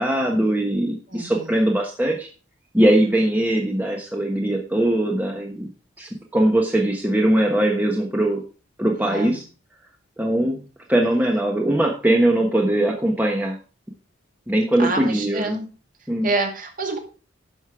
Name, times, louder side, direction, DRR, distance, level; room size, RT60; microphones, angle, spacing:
voice 1, 0.0-2.3 2.7-5.7 6.0-8.4 8.8-9.4 10.2-10.6 10.9-13.5 14.5-15.6 16.1-16.3, right 1 dB, 10° right, 1 dB, 1.1 m, -21 dB
voice 2, 1.1-1.5 9.0-9.4 14.8-15.7 16.2-17.0, right 3 dB, 40° right, 3 dB, 2.2 m, -27 dB
11.0 x 6.5 x 4.7 m, 0.36 s
head